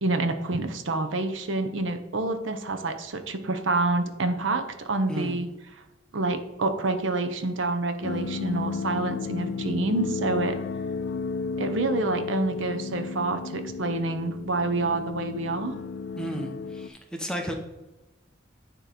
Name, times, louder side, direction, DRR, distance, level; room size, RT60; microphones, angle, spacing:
voice 1, 0.0-5.5 6.1-10.6 11.6-15.8, right 2 dB, 70° right, 7 dB, 0.7 m, -27 dB
voice 2, 5.1-5.4 16.2-17.5, right 1 dB, 5° left, 3 dB, 0.7 m, -33 dB
sound 1, 8.0-16.9, left 5 dB, 60° left, 0.4 m, -33 dB
9.0 x 3.0 x 4.9 m, 1.0 s
head